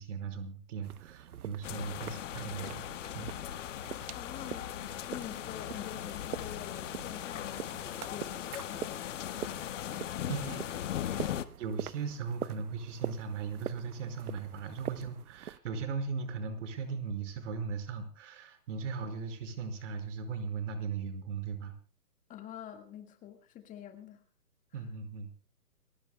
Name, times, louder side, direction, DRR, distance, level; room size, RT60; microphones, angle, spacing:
voice 1, 0.0-2.8 3.1-3.3 10.3-21.7 24.7-25.3, right 5 dB, 50° right, 8 dB, 5.3 m, -38 dB
sound 1, 0.8-15.6, right 10 dB, 65° right, 1.0 m, -44 dB
sound 2, 1.6-11.4, left 11 dB, 50° left, 1.5 m, -39 dB
voice 2, 4.1-9.2 22.3-24.2 24.7-24.8, left 10 dB, 15° left, 6 dB, 1.8 m, -47 dB
30.0 x 16.0 x 2.3 m, 0.36 s
hypercardioid pair, 135°, 48 cm